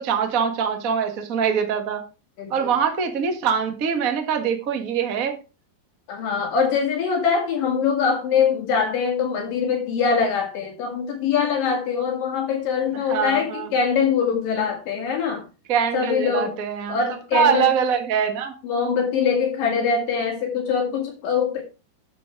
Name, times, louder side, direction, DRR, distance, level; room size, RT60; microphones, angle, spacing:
voice 1, 0.0-2.0 2.5-5.3 13.1-13.7 15.7-17.0 17.3-18.5, right 7 dB, 35° right, 5 dB, 1.5 m, -23 dB
voice 2, 2.4-2.7 6.1-15.4 15.9-16.5 16.9-17.7 18.6-21.6, left 6 dB, 80° left, 0 dB, 4.1 m, -23 dB
11.5 x 7.2 x 4.7 m, 0.31 s
omnidirectional pair, 3.9 m